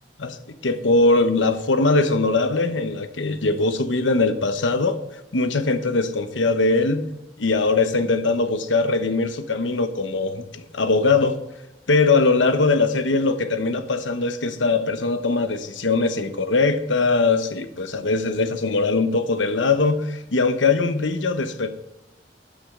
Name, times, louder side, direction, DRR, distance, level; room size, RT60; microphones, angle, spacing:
voice 1, 0.6-5.0 5.3-7.1 7.4-11.4 11.9-21.7, left 3 dB, 80° left, 9 dB, 1.0 m, -21 dB
12.5 x 8.8 x 3.8 m, 0.92 s
head